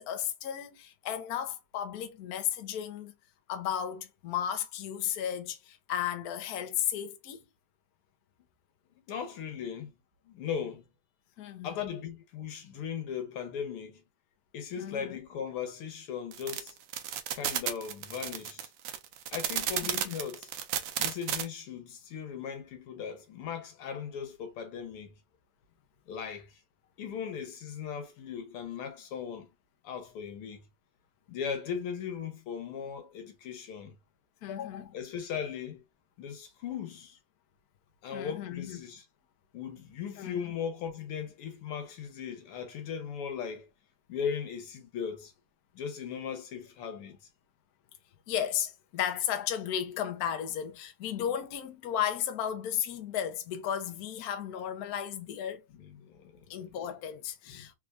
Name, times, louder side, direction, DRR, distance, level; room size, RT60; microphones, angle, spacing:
voice 1, 0.0-3.1 3.5-7.4 11.4-11.7 14.8-15.1 19.8-20.2 34.4-34.9 38.1-38.8 40.2-40.5 48.3-55.6 56.5-57.7, left 10 dB, 60° left, 1.0 m, -34 dB
voice 2, 9.1-9.9 10.3-10.8 11.6-14.0 14.5-16.8 17.3-18.7 19.3-20.5 21.0-25.1 26.1-26.5 27.0-29.5 29.8-30.6 31.3-34.0 34.9-35.8 36.2-37.2 38.0-39.0 39.5-43.7 44.1-45.3 45.7-47.2 55.8-56.3 56.6-56.7 57.5-57.7, left 7 dB, 85° left, 1.9 m, -38 dB
sound 1, 16.3-21.4, right 10 dB, 70° right, 1.3 m, -32 dB
3.9 x 3.5 x 2.5 m
omnidirectional pair, 2.4 m